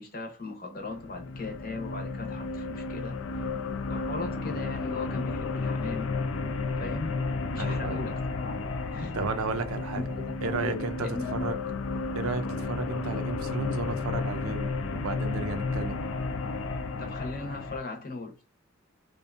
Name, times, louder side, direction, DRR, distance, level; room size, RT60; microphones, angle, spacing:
voice 1, 0.0-3.5 3.9-6.1 6.7-7.2 7.5-9.2 9.9-11.5 17.0-18.4, left 3 dB, 45° left, 0.7 m, -38 dB
sound 1, 0.8-17.8, left 3 dB, 65° left, 0.3 m, -32 dB
voice 2, 7.6-8.0 9.1-10.1 10.4-11.5 12.1-16.0, right 4 dB, 85° right, 0.5 m, -33 dB
2.6 x 2.2 x 2.4 m
head